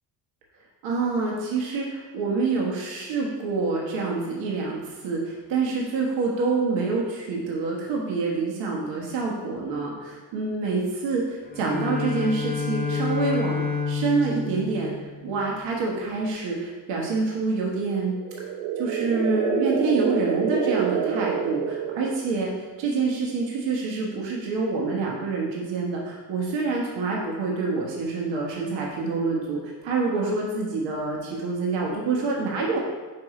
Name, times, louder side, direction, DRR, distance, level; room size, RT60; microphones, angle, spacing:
voice 1, 0.8-18.2 18.8-22.5 22.8-32.8, right 3 dB, 80° right, -2 dB, 1.2 m, -27 dB
Bowed string instrument, 11.4-15.6, left 5 dB, 20° left, 0.5 m, -29 dB
sound 1, 18.1-22.5, right 6 dB, 60° right, 0.6 m, -27 dB
5.3 x 4.8 x 4.8 m, 1.4 s
cardioid pair, 150°, 44 cm